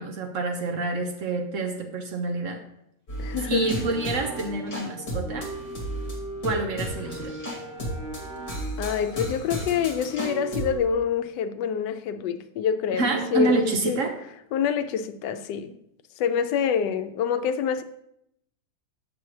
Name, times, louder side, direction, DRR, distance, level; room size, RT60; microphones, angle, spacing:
voice 1, 0.0-2.6 3.5-5.5 6.4-7.4 12.9-14.2, right 3 dB, 60° right, 0.9 m, -27 dB
sound 1, 3.1-10.8, right 1 dB, 30° left, 2.0 m, -33 dB
voice 2, 3.2-3.7 8.8-13.6 13.8-14.0 14.5-15.7 16.2-17.8, left 7 dB, 90° left, 1.2 m, -26 dB
7.5 x 7.0 x 3.2 m
omnidirectional pair, 1.8 m